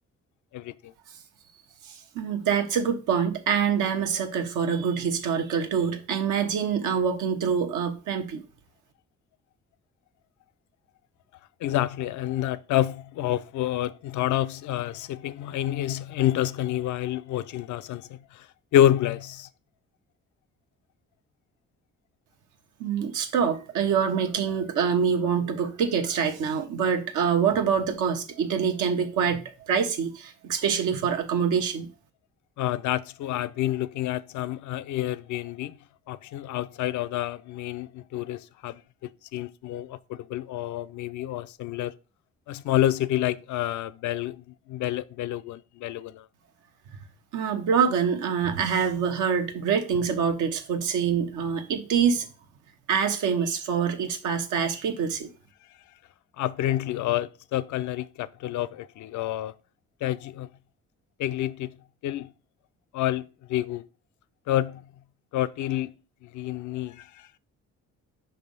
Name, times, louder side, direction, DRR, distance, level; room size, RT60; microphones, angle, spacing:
voice 1, 0.5-0.9 11.6-18.5 18.7-19.5 32.6-35.8 36.1-38.8 39.3-41.9 42.5-46.3 56.4-59.5 60.0-60.5 61.2-61.7 62.0-62.3 62.9-63.8 64.5-64.8 65.3-65.9 66.2-67.4, left 12 dB, 75° left, 0.5 m, -28 dB
voice 2, 2.1-8.4 22.8-31.9 47.3-52.3 52.9-55.3, right 7 dB, 85° right, 1.1 m, -25 dB
5.2 x 3.4 x 5.3 m
cardioid pair, 90°, 30 cm